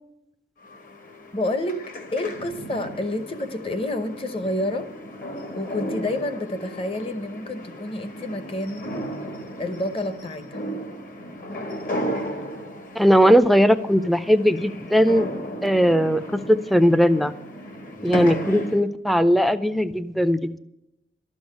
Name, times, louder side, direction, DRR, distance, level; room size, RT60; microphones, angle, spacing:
sound 1, 0.6-18.8, equal, 50° left, 1.5 m, -35 dB
voice 1, 1.3-1.8 2.1-4.9 5.5-8.9 9.6-10.6, left 1 dB, 30° left, 10 dB, 0.9 m, -28 dB
voice 2, 13.0-15.3 15.6-16.2 16.5-17.3 18.0-20.6, equal, ahead, 11 dB, 0.4 m, -18 dB
12.5 x 6.4 x 9.7 m, 0.86 s
head